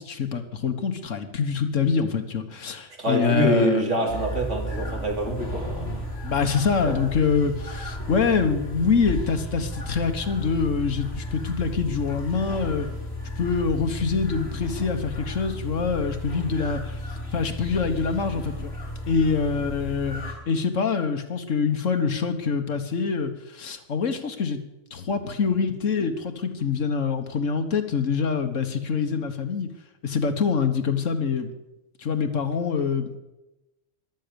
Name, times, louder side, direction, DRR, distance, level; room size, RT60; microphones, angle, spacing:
voice 1, 0.0-3.9 6.2-12.9 13.4-17.0 17.3-18.7 19.1-24.6 24.9-29.7 30.0-31.5 32.0-33.2, left 5 dB, 85° left, 8 dB, 1.7 m, -25 dB
voice 2, 3.0-6.0 6.8-7.0, right 1 dB, 70° right, 1 dB, 3.4 m, -26 dB
sound 1, 4.1-20.3, left 1 dB, 55° left, 6.7 m, -34 dB
14.0 x 12.0 x 6.9 m, 0.98 s
omnidirectional pair, 1.3 m